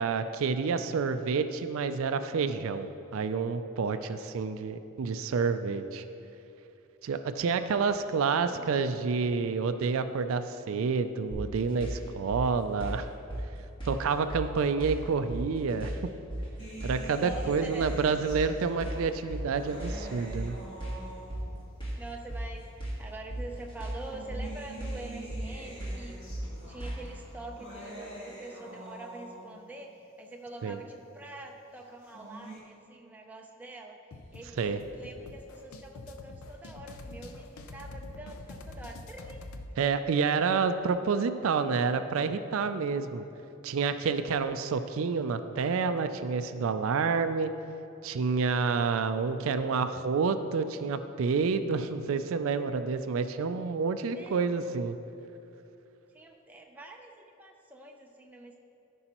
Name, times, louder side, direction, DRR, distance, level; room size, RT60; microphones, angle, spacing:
voice 1, 0.0-6.0 7.0-13.1 13.9-16.1 16.8-20.6 30.6-30.8 34.6-34.8 39.8-43.2 43.6-47.5 48.0-55.0, right 5 dB, 75° right, 10 dB, 0.4 m, -29 dB
sound 1, 11.3-27.2, right 1 dB, 20° left, 1.7 m, -37 dB
sound 2, 16.6-21.7 22.6-22.7 23.8-29.7 31.8-32.6, right 1 dB, 50° left, 1.8 m, -46 dB
voice 2, 17.1-18.0 21.9-22.7 23.0-26.2 26.7-39.5 54.1-54.4 56.1-58.6, right 2 dB, 10° right, 0 dB, 0.5 m, -45 dB
sound 3, 34.1-39.7, left 2 dB, 85° left, 0.5 m, -45 dB
13.5 x 5.4 x 3.0 m, 2.9 s
head